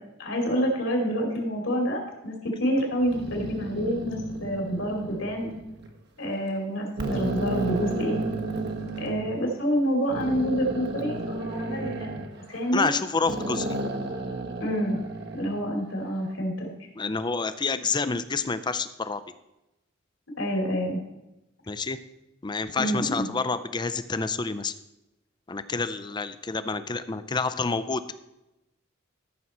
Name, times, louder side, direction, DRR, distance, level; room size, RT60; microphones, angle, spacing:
voice 1, 0.2-5.5 6.2-8.2 9.0-12.9 14.6-15.0 15.3-16.7 20.4-21.0 22.8-23.3, equal, 65° left, 1 dB, 2.7 m, -28 dB
sound 1, 3.0-5.9 6.5-6.6 7.0-9.3 10.1-12.9 13.3-15.6, right 2 dB, 55° right, 1.1 m, -33 dB
voice 2, 12.7-13.8 17.0-19.2 21.7-22.0 22.4-24.7 25.5-28.0, left 4 dB, 20° left, 13 dB, 0.5 m, -28 dB
13.5 x 6.3 x 4.2 m, 0.94 s
head